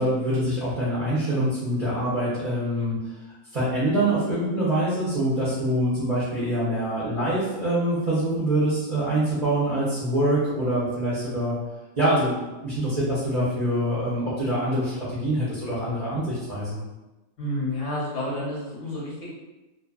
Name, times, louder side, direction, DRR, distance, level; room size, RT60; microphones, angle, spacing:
voice 1, 0.0-3.0 3.5-11.5 12.0-16.8, right 1 dB, 35° right, -9 dB, 0.7 m, -25 dB
voice 2, 17.4-19.2, left 1 dB, 60° left, -6 dB, 0.9 m, -30 dB
2.6 x 2.5 x 2.3 m, 1.1 s
omnidirectional pair, 1.6 m